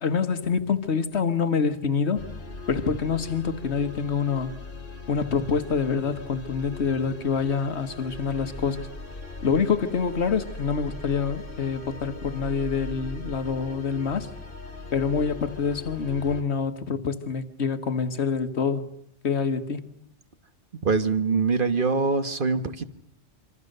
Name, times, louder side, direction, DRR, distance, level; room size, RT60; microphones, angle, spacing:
voice 1, 0.0-2.2 2.7-4.5 5.1-8.9 9.4-14.3 14.9-18.8 19.2-19.8, left 5 dB, 65° left, 1.6 m, -26 dB
sound 1, 2.1-16.4, left 2 dB, 50° left, 2.4 m, -40 dB
voice 2, 20.8-22.9, right 4 dB, 45° right, 1.4 m, -23 dB
26.5 x 25.0 x 6.6 m
omnidirectional pair, 1.2 m